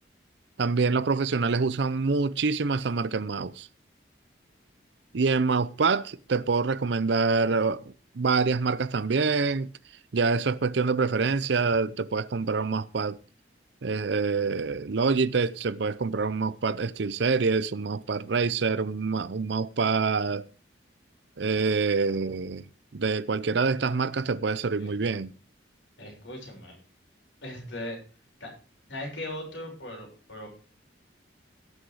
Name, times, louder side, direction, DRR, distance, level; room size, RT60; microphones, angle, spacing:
voice 1, 0.6-3.7 5.1-9.7 10.1-13.2 13.8-20.5 21.4-22.6 22.9-25.3, right 4 dB, 65° right, 0.6 m, -26 dB
voice 2, 26.0-26.7 27.4-28.0 28.4-28.5 28.9-30.5, left 1 dB, 70° left, 6.7 m, -38 dB
17.5 x 6.5 x 4.8 m
head